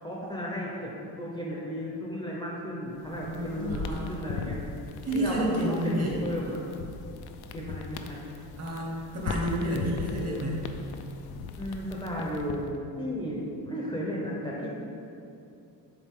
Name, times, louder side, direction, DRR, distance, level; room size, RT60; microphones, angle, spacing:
voice 1, 0.0-0.9 1.2-4.6 5.1-6.6 7.5-8.2 11.6-12.7 13.0-14.7, equal, 10° left, -5 dB, 0.6 m, -34 dB
sound 1, 3.0-12.8, left 5 dB, 85° left, 0.5 m, -39 dB
voice 2, 3.1-4.1 5.0-6.2 8.6-10.7, right 1 dB, 40° right, -3 dB, 1.2 m, -30 dB
7.3 x 4.0 x 3.6 m, 2.7 s
cardioid pair, 160°, 38 cm